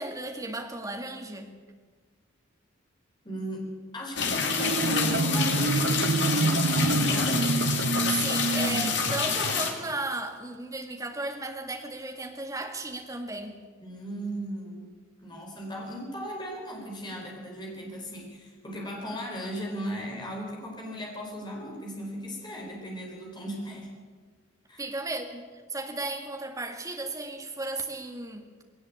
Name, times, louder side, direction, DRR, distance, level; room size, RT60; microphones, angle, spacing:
voice 1, 0.0-1.5 8.1-13.6 24.8-28.5, right 2 dB, 15° right, 4 dB, 2.0 m, -35 dB
voice 2, 3.2-7.3 8.2-8.9 13.8-24.0 24.7-24.8, equal, 20° left, -1 dB, 4.6 m, -37 dB
sound 1, 4.2-9.7, left 5 dB, 60° left, 2.8 m, -28 dB
Marimba xylophone, 4.4-9.6, right 3 dB, 55° right, 0.6 m, -27 dB
20.0 x 17.5 x 8.6 m, 1.5 s
head